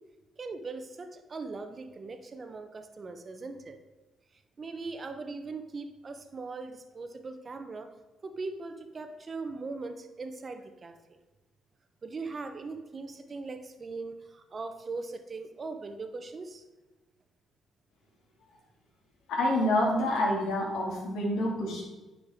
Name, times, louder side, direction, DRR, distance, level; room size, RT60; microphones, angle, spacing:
voice 1, 0.4-3.8 4.6-7.9 8.2-11.2 12.0-16.6, right 3 dB, 40° right, 8 dB, 0.9 m, -40 dB
voice 2, 19.3-21.8, left 1 dB, 80° left, -2 dB, 2.3 m, -27 dB
9.9 x 5.0 x 3.6 m, 1.2 s
supercardioid pair, 65°, 0 cm